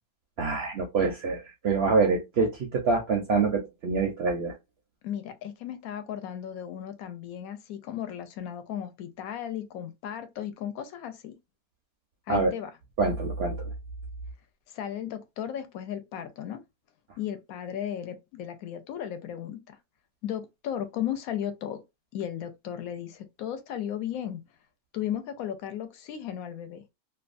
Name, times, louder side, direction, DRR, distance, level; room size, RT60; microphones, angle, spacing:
voice 1, 0.4-4.5 12.3-12.5 13.0-13.7, right 4 dB, 65° right, 0.6 m, -26 dB
voice 2, 5.0-11.3 12.3-12.7 14.7-16.6 17.2-19.8 20.2-21.8 22.1-24.4 24.9-26.8, left 10 dB, 75° left, 1.0 m, -35 dB
2.6 x 2.2 x 2.4 m
omnidirectional pair, 1.6 m